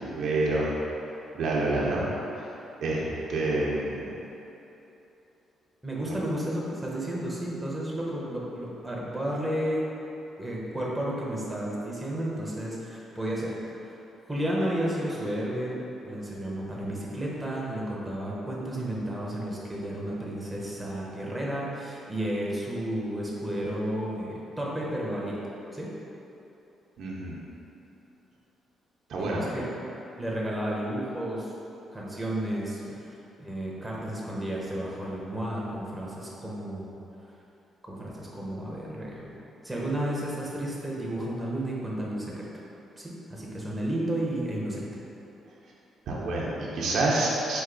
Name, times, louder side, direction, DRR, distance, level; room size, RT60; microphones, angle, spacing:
voice 1, 0.1-0.7 1.3-2.0 2.3-2.5 2.8-4.1 6.1-6.2 27.0-27.4 29.1-29.4 46.1-47.6, right 2 dB, 70° right, -4 dB, 0.7 m, -28 dB
voice 2, 5.8-9.9 10.4-13.6 14.3-25.4 25.7-25.9 29.2-29.9 30.2-31.5 31.9-32.8 33.4-37.0 37.8-39.4 39.6-42.5 43.0-44.9, right 1 dB, 10° right, -5 dB, 0.8 m, -32 dB
4.7 x 2.6 x 3.8 m, 3.0 s
cardioid pair, 95°, 0 cm